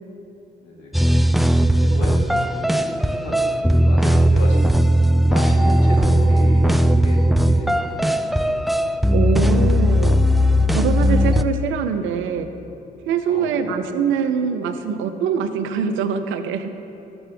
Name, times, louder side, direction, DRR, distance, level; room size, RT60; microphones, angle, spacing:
voice 1, 0.6-8.8 13.3-13.7, left 1 dB, 90° left, -3 dB, 1.5 m, -33 dB
sound 1, 0.9-11.4, equal, ahead, 0.3 m, -17 dB
voice 2, 9.1-10.2 10.7-12.5 13.1-16.7, right 7 dB, 70° right, 9 dB, 0.6 m, -23 dB
12.0 x 6.9 x 3.4 m, 2.9 s
hypercardioid pair, 45°, 21 cm